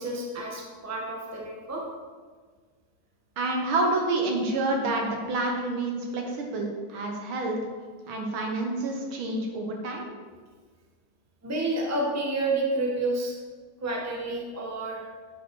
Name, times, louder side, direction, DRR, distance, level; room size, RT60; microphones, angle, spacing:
voice 1, 0.0-1.8 11.4-13.3 13.8-15.0, right 2 dB, 10° right, -1 dB, 1.0 m, -29 dB
voice 2, 3.4-7.6 8.1-10.1, right 2 dB, 75° right, 1 dB, 2.1 m, -28 dB
9.6 x 5.5 x 4.7 m, 1.5 s
omnidirectional pair, 2.3 m